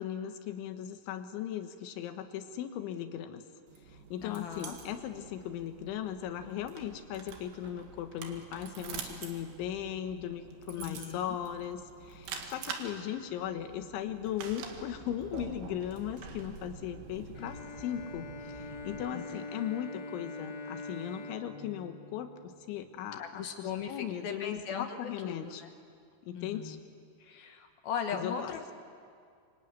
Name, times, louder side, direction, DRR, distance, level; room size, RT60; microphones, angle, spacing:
voice 1, 0.0-3.4 3.9-25.6 26.2-26.8 28.1-28.5, left 10 dB, 85° left, 7 dB, 3.8 m, -38 dB
sound 1, 3.7-19.1, right 6 dB, 75° right, 4.0 m, -46 dB
voice 2, 4.2-4.8 10.8-11.4 19.1-19.4 23.2-25.7 26.4-26.8 27.2-28.7, left 7 dB, 65° left, 5 dB, 2.8 m, -38 dB
Bowed string instrument, 17.3-23.0, left 3 dB, 45° left, 2.8 m, -44 dB
25.0 x 24.5 x 9.6 m, 2.2 s
omnidirectional pair, 5.3 m